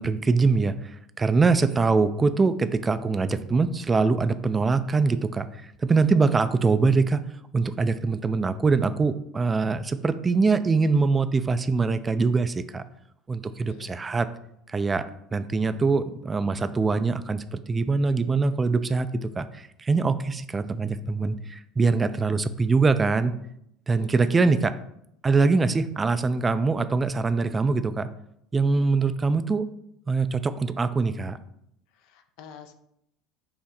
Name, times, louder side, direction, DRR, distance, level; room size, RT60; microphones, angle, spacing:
voice 1, 0.0-5.5 5.8-7.3 7.5-12.8 13.3-14.3 14.7-15.1 15.3-23.3 23.9-24.7 25.2-28.1 28.5-29.7 30.1-31.4, right 4 dB, 25° right, 11 dB, 0.3 m, -23 dB
voice 2, 24.0-24.5 32.0-32.7, left 8 dB, 60° left, 7 dB, 0.4 m, -46 dB
5.7 x 2.1 x 4.0 m, 0.76 s
figure-of-eight pair, 65°, 0 cm